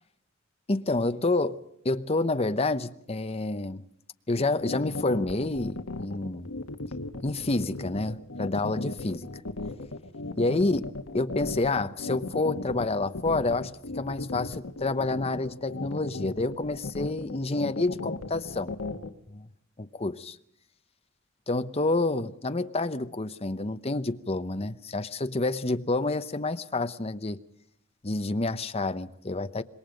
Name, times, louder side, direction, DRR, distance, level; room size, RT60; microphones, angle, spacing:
voice 1, 0.7-3.8 4.3-6.5 7.2-9.3 10.4-18.7 19.3-19.5 19.8-20.4 21.5-27.4 28.0-29.6, left 2 dB, 30° left, 0.9 m, -28 dB
sound 1, 4.4-19.1, left 2 dB, 85° left, 1.4 m, -36 dB
26.5 x 21.0 x 5.2 m
head